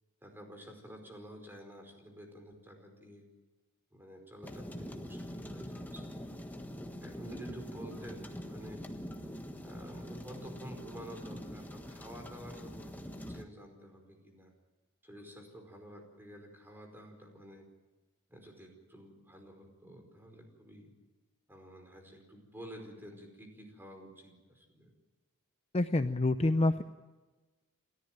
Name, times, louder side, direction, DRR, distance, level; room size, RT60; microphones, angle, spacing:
voice 1, 0.2-3.3 3.9-6.3 7.0-8.8 9.6-14.5 15.0-17.7 18.3-20.9 21.5-24.9, right 1 dB, 10° right, 3 dB, 4.9 m, -50 dB
sound 1, 4.4-13.4, equal, 10° left, 1.4 m, -44 dB
voice 2, 25.7-26.8, left 2 dB, 30° left, 9 dB, 0.6 m, -27 dB
28.5 x 14.0 x 9.1 m, 1.2 s
head